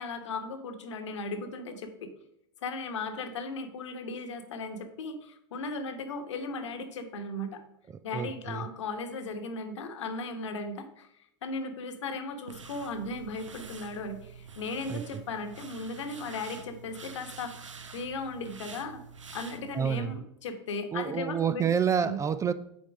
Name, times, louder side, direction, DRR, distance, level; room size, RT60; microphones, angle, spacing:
voice 1, 0.0-2.1 2.6-7.6 8.0-17.5 17.9-19.0 19.3-21.7 22.0-22.2, left 3 dB, 70° left, 6 dB, 1.1 m, -37 dB
voice 2, 7.9-8.7 14.9-15.2 19.7-20.2 20.9-22.5, right 7 dB, 20° right, 14 dB, 0.4 m, -29 dB
sound 1, 12.5-20.0, right 5 dB, 90° right, 0.6 m, -47 dB
7.2 x 4.5 x 5.1 m, 0.77 s
figure-of-eight pair, 85°, 16 cm